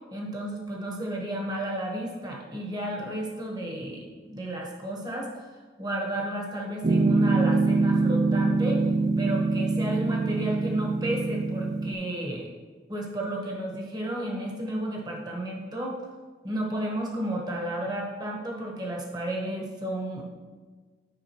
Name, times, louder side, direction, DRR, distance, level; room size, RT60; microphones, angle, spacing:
voice 1, 0.1-5.3 5.8-8.8 9.2-12.5 12.9-16.0 16.4-20.2, right 1 dB, 20° right, -1 dB, 1.1 m, -32 dB
Piano, 6.8-11.9, right 3 dB, 40° right, 0.4 m, -24 dB
10.0 x 5.2 x 3.0 m, 1.5 s
head